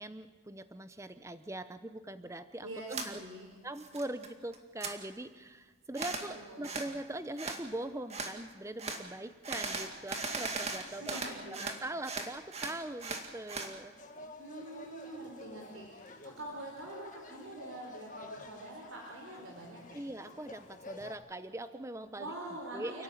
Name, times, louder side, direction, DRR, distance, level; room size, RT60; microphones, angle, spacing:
voice 1, 0.0-3.2 3.6-11.2 11.5-13.9 19.9-22.3 22.7-23.0, right 1 dB, 15° right, 11 dB, 0.8 m, -42 dB
voice 2, 2.6-3.5 6.3-6.9 10.9-11.7 14.4-20.0 22.2-23.0, right 1 dB, 85° right, 0 dB, 4.3 m, -45 dB
sound 1, 2.9-3.1 3.5-4.3 4.5-4.9 5.9-6.3 6.6-6.9 7.4-7.6 8.1-8.3 8.8-9.0 9.4-11.8 12.0-13.7, right 3 dB, 30° right, 2.1 m, -38 dB
sound 2, 14.0-21.1, left 2 dB, 40° left, 1.8 m, -51 dB
29.0 x 13.0 x 9.3 m, 1.4 s
head